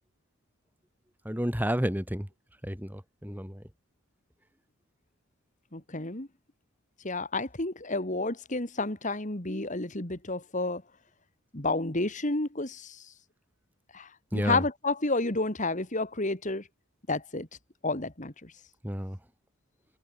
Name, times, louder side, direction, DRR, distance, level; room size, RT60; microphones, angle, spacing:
voice 1, 1.2-2.3 2.6-3.6 14.3-14.6 18.8-19.2, equal, 10° right, 2.4 m, -31 dB
voice 2, 5.7-6.3 7.0-10.8 11.5-13.0 13.9-16.7 17.1-17.5 17.8-18.5, left 2 dB, 35° left, 2.3 m, -30 dB
head